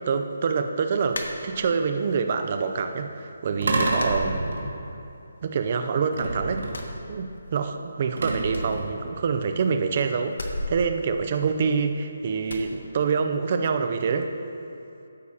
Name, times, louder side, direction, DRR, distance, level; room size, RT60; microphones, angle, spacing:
voice 1, 0.0-4.4 5.4-6.7 7.1-14.3, right 5 dB, 30° right, 7 dB, 0.5 m, -26 dB
sound 1, 1.1-2.0 2.4-3.1 3.3-3.5 3.9-5.1 5.4-6.2 6.6-7.8 8.0-8.1 8.5-9.6 10.3-12.0 12.5-12.7, left 2 dB, 70° left, 1.2 m, -37 dB
sound 2, 3.6-5.0 6.1-7.0 8.2-9.1, right 2 dB, 65° right, 1.5 m, -28 dB
12.5 x 9.6 x 2.9 m, 2.8 s
hypercardioid pair, 175°, 0 cm